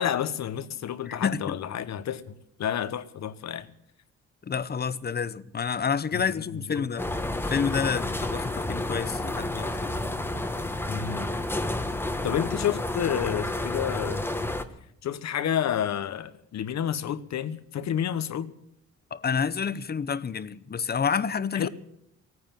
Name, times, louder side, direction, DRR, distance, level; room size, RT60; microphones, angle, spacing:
voice 1, 0.0-2.3 2.6-3.7 6.1-6.9 10.9-11.4 12.2-14.2 15.0-18.5 21.5-21.7, left 9 dB, 65° left, 1.2 m, -30 dB
voice 2, 1.1-1.6 4.4-7.1 7.4-9.9 19.1-21.7, left 6 dB, 30° left, 0.8 m, -29 dB
sound 1, 7.0-14.6, left 1 dB, 5° left, 1.3 m, -30 dB
17.0 x 9.6 x 8.9 m
cardioid pair, 90°, 30 cm